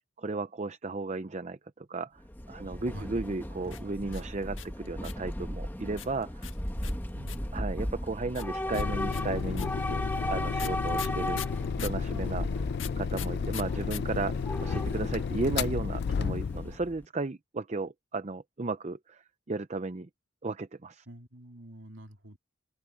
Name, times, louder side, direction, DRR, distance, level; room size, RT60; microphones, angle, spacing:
voice 1, 0.2-2.2 2.5-6.5 7.5-11.4 11.8-12.4 13.0-20.1 20.4-21.1, right 3 dB, 35° right, 0.6 m, -35 dB
Train / Subway metro underground, 2.2-17.0, left 1 dB, 10° left, 1.3 m, -37 dB
voice 2, 2.9-3.3 7.1-7.6 10.6-10.8 12.3-12.6 15.3-15.4 21.1-22.4, right 1 dB, 75° right, 3.1 m, -48 dB
sound 1, 3.6-5.3 6.0-7.6 8.3-12.0 12.8-14.0 14.3-14.4 14.5-15.0, left 12 dB, 80° left, 1.7 m, -42 dB
sound 2, 8.7-16.8, left 5 dB, 55° left, 0.3 m, -32 dB
open air
head